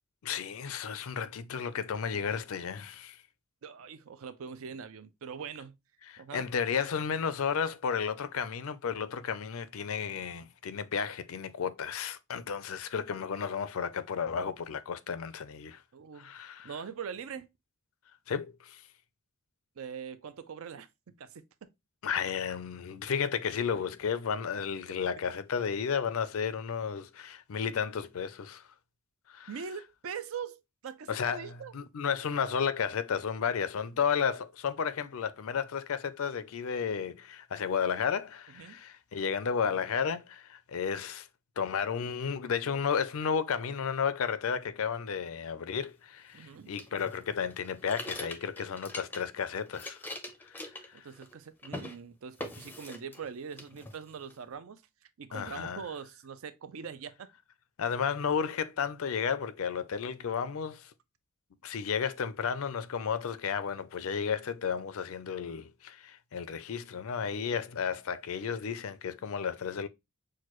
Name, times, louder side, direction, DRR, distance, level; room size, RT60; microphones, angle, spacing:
voice 1, 0.2-3.2 6.1-15.8 16.2-16.7 18.3-18.8 22.0-28.6 29.3-29.5 31.1-41.3 41.6-50.0 50.4-51.1 55.3-55.8 57.8-60.9 61.6-69.9, left 6 dB, 70° left, 0.4 m, -33 dB
voice 2, 3.6-5.8 6.2-6.5 15.9-16.3 16.6-17.5 19.8-20.9 21.2-21.7 29.5-31.7 34.0-34.1 38.5-38.8 46.3-46.7 50.9-54.8 55.2-57.3, right 6 dB, 65° right, 0.4 m, -42 dB
sound 1, 46.8-49.4 49.7-51.4 51.6-52.0 52.4-53.3 53.6-54.4, left 1 dB, 10° left, 0.5 m, -42 dB
6.3 x 2.2 x 3.0 m
head